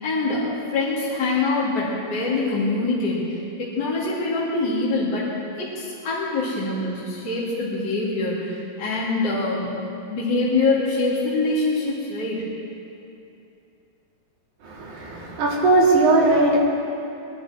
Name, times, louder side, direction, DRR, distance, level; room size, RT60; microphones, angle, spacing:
voice 1, 0.0-5.3 5.5-9.7 10.0-12.4 15.1-15.2, left 3 dB, 30° left, -9 dB, 3.3 m, -24 dB
voice 2, 14.6-16.6, right 2 dB, 55° right, -4 dB, 4.0 m, -19 dB
22.5 x 12.0 x 4.6 m, 2.7 s
omnidirectional pair, 4.4 m